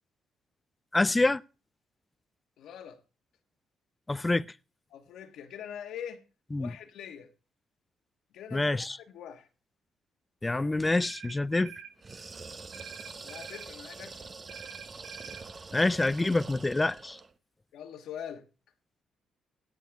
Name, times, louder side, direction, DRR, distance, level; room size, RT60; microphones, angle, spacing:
voice 1, 0.9-1.4 4.1-4.5 6.5-6.7 8.5-9.0 10.4-11.7 15.7-17.2, left 2 dB, 15° left, 0.5 m, -26 dB
voice 2, 2.6-3.0 4.9-6.2 6.6-7.3 8.3-9.5 13.2-14.3 17.7-18.5, left 9 dB, 80° left, 1.5 m, -43 dB
sound 1, 11.0-12.0 12.7-13.7 14.5-15.5, right 8 dB, 85° right, 1.1 m, -46 dB
sound 2, 12.0-17.3, right 4 dB, 35° right, 0.9 m, -45 dB
17.0 x 8.4 x 3.5 m
cardioid pair, 90°, 0 cm